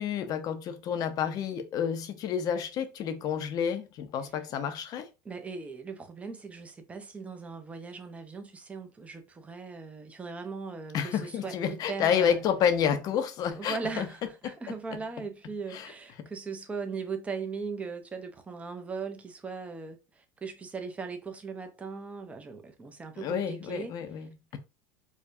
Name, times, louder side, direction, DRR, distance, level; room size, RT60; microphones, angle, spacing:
voice 1, 0.0-5.1 10.9-14.0 14.4-14.5 15.7-15.9 16.2-16.3 23.2-24.6, left 8 dB, 45° left, 0.6 m, -29 dB
voice 2, 5.2-12.4 13.5-24.2, right 5 dB, 15° right, 0.7 m, -39 dB
4.7 x 2.2 x 2.6 m
supercardioid pair, 125°, 9 cm